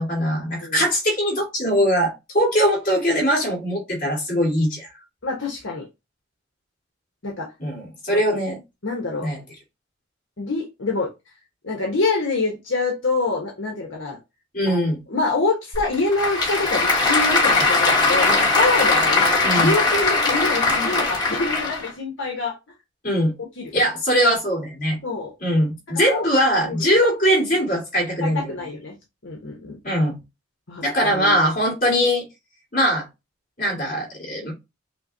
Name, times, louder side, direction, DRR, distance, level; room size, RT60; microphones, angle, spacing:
voice 1, 0.0-4.9 7.6-8.6 9.2-9.4 14.5-15.0 19.4-19.7 23.0-23.3 23.7-25.0 25.4-28.5 29.8-30.2 30.8-32.3 32.7-33.1 33.6-34.5, equal, 45° left, 2.1 m, -21 dB
voice 2, 5.2-5.9 7.2-7.5 8.8-9.3 10.4-11.1 11.6-14.2 14.7-14.8 15.1-22.6 23.6-23.7 25.0-25.3 26.1-26.2 26.6-26.9 28.2-28.9 29.2-29.8 30.7-31.4, left 3 dB, 70° left, 1.1 m, -26 dB
Applause / Crowd, 15.7-21.9, left 3 dB, 20° left, 1.2 m, -20 dB
5.5 x 2.2 x 2.7 m
head